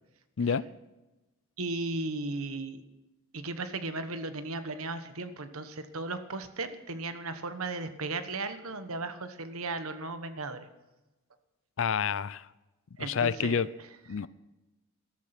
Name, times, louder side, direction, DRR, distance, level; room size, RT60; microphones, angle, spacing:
voice 1, 1.6-2.8 3.3-10.7 13.0-13.6 14.1-14.2, right 3 dB, 75° right, 1.2 m, -36 dB
voice 2, 11.8-12.4 13.0-13.7 14.1-14.3, left 6 dB, 60° left, 0.5 m, -28 dB
13.5 x 13.0 x 5.9 m
head